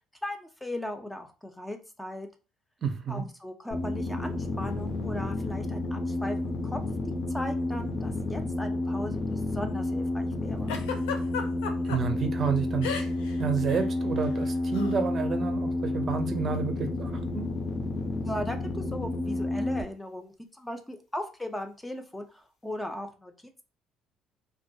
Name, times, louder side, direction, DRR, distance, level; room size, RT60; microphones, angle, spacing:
voice 1, 0.2-2.3 3.1-6.8 7.3-10.7 18.2-23.3, left 1 dB, 10° left, 5 dB, 0.5 m, -38 dB
voice 2, 2.8-3.2 11.8-12.9 13.4-17.5, right 6 dB, 45° right, 6 dB, 0.5 m, -30 dB
sound 1, 3.7-19.8, left 2 dB, 60° left, 0.8 m, -30 dB
Giggle, 10.7-12.0 12.8-13.3 13.6-13.8 14.7-15.0, left 6 dB, 85° left, 0.4 m, -33 dB
2.2 x 2.1 x 2.7 m, 0.33 s
supercardioid pair, 70°, 0 cm